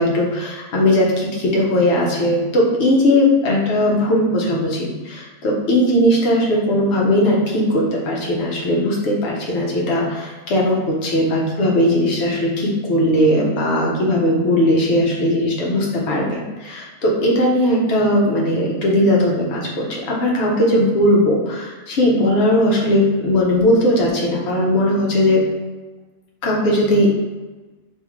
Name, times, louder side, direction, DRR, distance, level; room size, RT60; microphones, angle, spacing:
voice 1, 0.0-25.4 26.4-27.1, left 1 dB, 60° left, -3 dB, 1.0 m, -18 dB
3.5 x 2.7 x 3.0 m, 1.2 s
omnidirectional pair, 1.4 m